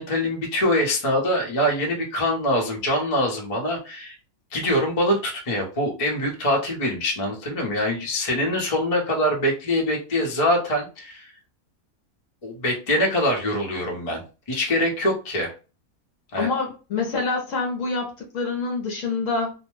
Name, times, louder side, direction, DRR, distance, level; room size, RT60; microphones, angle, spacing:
voice 1, 0.0-4.2 4.5-11.3 12.4-14.2 14.5-15.5 16.3-16.5, left 1 dB, 30° left, -1 dB, 0.7 m, -24 dB
voice 2, 16.4-19.5, left 4 dB, 65° left, 1 dB, 1.0 m, -26 dB
2.7 x 2.1 x 3.1 m, 0.32 s
omnidirectional pair, 1.6 m